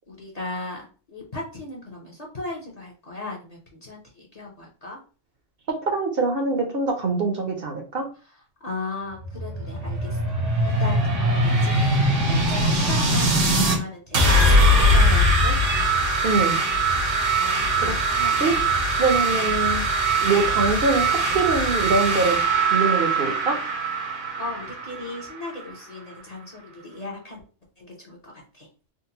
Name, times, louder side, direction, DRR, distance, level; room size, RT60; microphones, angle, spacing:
voice 1, 0.1-5.0 8.6-10.4 10.8-15.6 17.4-18.0 19.2-19.4 24.4-27.4 27.8-28.7, left 2 dB, 40° left, -3 dB, 0.7 m, -37 dB
voice 2, 5.8-8.1 16.2-16.6 17.8-19.9 20.2-22.4 22.7-23.6, right 3 dB, 55° right, 3 dB, 0.8 m, -24 dB
sound 1, 9.1-13.8 14.1-25.7, right 1 dB, 80° right, 1.2 m, -21 dB
3.8 x 2.1 x 2.7 m, 0.37 s
omnidirectional pair, 1.3 m